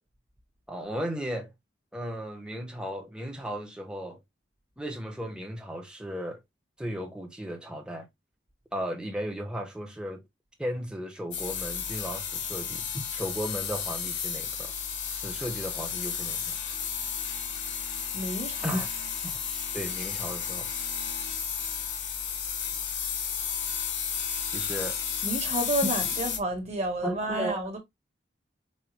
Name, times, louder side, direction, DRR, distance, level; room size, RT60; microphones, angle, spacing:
voice 1, 0.7-1.5 1.9-4.2 4.8-6.4 6.8-8.1 8.7-10.2 10.6-14.7 15.1-16.6 18.6-18.9 19.7-20.7 24.5-25.0 27.0-27.8, equal, 5° right, 0.9 m, -35 dB
sound 1, 11.3-26.4, left 7 dB, 70° left, 0.9 m, -32 dB
voice 2, 18.1-18.8 25.2-27.8, right 1 dB, 35° right, 1.4 m, -30 dB
5.4 x 2.2 x 3.2 m
head